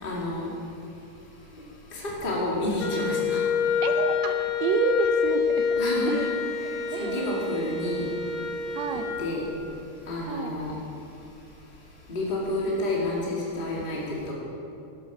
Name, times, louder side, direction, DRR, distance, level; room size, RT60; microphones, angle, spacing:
voice 1, 0.0-0.5 1.9-3.4 5.8-6.1 7.0-8.1 9.2-9.4 10.1-10.7 12.1-14.3, left 1 dB, 20° left, -5 dB, 2.0 m, -29 dB
Wind instrument woodwind instrument, 2.8-9.3, left 6 dB, 70° left, 1.2 m, -27 dB
voice 2, 3.8-6.4 6.9-7.3 8.8-9.1 10.3-10.5, right 5 dB, 75° right, 7 dB, 1.7 m, -30 dB
12.0 x 9.4 x 5.9 m, 2.6 s
omnidirectional pair, 3.7 m